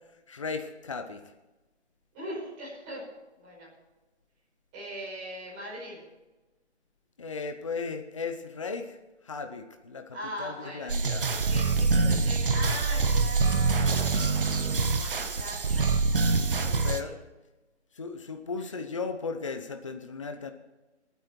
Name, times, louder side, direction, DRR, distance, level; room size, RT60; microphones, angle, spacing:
voice 1, 0.3-1.2 7.2-9.0 9.2-11.3 16.8-17.2 17.9-20.5, left 4 dB, 25° left, 6 dB, 0.8 m, -36 dB
voice 2, 2.1-3.0 3.4-3.7 4.7-6.0 10.1-15.9 16.5-17.1 18.6-18.7, equal, 15° right, -6 dB, 5.4 m, -41 dB
sound 1, 10.9-17.0, right 4 dB, 50° right, 1.3 m, -25 dB
25.5 x 9.2 x 4.5 m, 1.1 s
hypercardioid pair, 170°, 35 cm